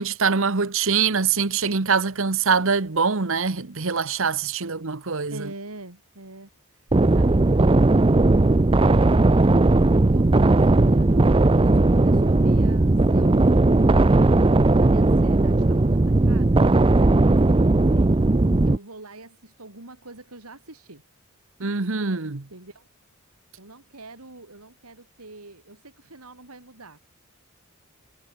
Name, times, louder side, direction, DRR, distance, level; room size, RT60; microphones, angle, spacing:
voice 1, 0.0-5.5 21.6-22.5, right 5 dB, 60° right, 1.2 m, -24 dB
voice 2, 5.3-7.9 9.7-14.2 14.7-18.1 18.6-21.0 22.5-22.9 23.6-27.0, right 2 dB, 85° right, 4.2 m, -45 dB
sound 1, 6.9-18.8, right 2 dB, 25° right, 0.5 m, -17 dB
head